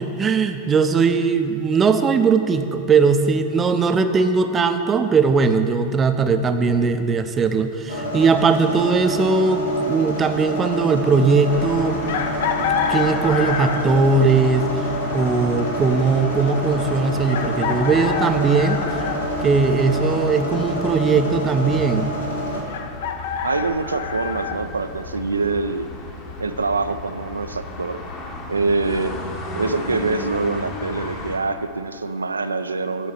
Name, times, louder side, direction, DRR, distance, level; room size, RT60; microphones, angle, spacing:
voice 1, 0.0-12.1 12.9-14.7 15.1-18.8 19.4-22.1, right 4 dB, 20° right, 8 dB, 0.5 m, -19 dB
sound 1, 7.9-22.6, equal, 80° left, 1.6 m, -28 dB
sound 2, 11.5-31.4, left 2 dB, 40° left, 1.3 m, -35 dB
Chicken rooster, 12.1-14.0 15.7-15.8 17.3-19.2 22.7-24.6, left 7 dB, 55° left, 0.6 m, -26 dB
voice 2, 23.4-25.9 26.4-28.0 28.5-29.2 29.6-33.1, right 3 dB, 75° right, 11 dB, 0.3 m, -24 dB
8.9 x 5.5 x 6.6 m, 2.5 s
figure-of-eight pair, 90°, 0 cm